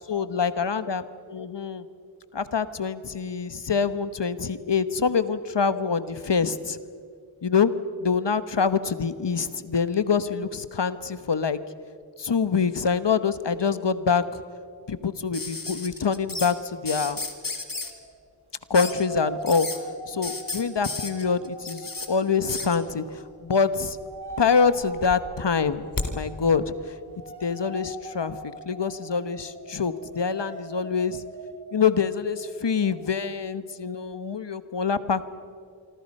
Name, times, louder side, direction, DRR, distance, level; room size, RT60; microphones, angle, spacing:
voice 1, 0.1-1.8 2.3-6.8 7.4-7.7 8.0-11.6 12.2-14.4 14.9-17.2 18.7-19.7 20.1-24.0 24.4-25.8 26.1-26.9 27.4-31.2 31.7-35.3, left 5 dB, 70° left, 13 dB, 1.2 m, -25 dB
sound 1, 15.3-16.5 16.8-17.9 18.7-19.0 19.4-19.8 20.2-22.1 22.5-22.8 23.8-24.4 24.7-26.1 27.5-27.6, left 3 dB, 50° left, 2.6 m, -33 dB
sound 2, 17.8-18.1 18.6-23.4 23.7-33.2, right 1 dB, 60° right, 4.7 m, -43 dB
26.0 x 25.0 x 5.5 m, 2.3 s
wide cardioid pair, 55°, 44 cm